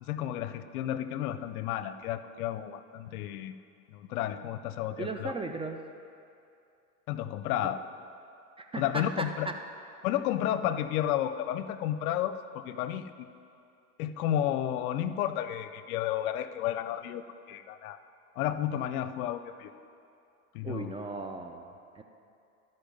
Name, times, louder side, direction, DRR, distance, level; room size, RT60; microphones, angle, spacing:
voice 1, 0.0-3.5 3.9-5.3 7.1-7.8 8.8-9.5 10.0-13.3 14.0-18.0 18.4-19.7 20.5-20.9, left 11 dB, 75° left, 12 dB, 0.6 m, -32 dB
voice 2, 5.0-5.8 7.6-7.7 8.6-9.5 20.6-22.0, right 3 dB, 15° right, 5 dB, 0.4 m, -37 dB
13.5 x 5.5 x 5.3 m, 2.5 s
hypercardioid pair, 90°, 44 cm